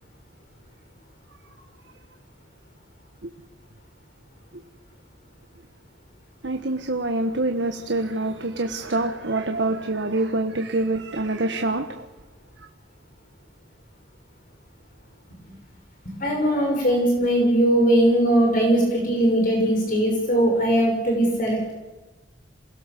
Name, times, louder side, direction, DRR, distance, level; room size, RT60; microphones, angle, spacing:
voice 1, 6.4-12.1, right 2 dB, 75° right, 1.5 m, -26 dB
voice 2, 16.1-21.7, right 1 dB, 50° left, 6.0 m, -20 dB
28.0 x 20.5 x 6.9 m
head